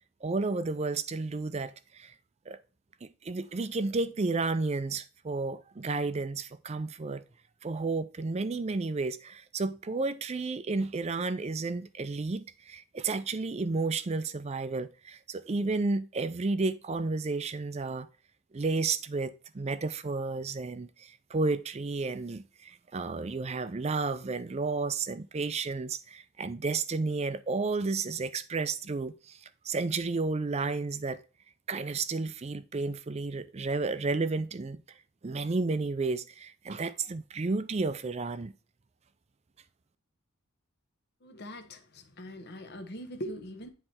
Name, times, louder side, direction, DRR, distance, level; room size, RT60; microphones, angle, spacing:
voice 1, 0.2-2.1 2.5-2.6 3.0-7.2 7.6-18.1 18.5-31.2 31.7-35.0 35.2-38.5, right 3 dB, 30° right, 0.4 m, -32 dB
voice 2, 41.2-43.7, equal, 50° left, 1.0 m, -41 dB
9.7 x 3.3 x 4.3 m
head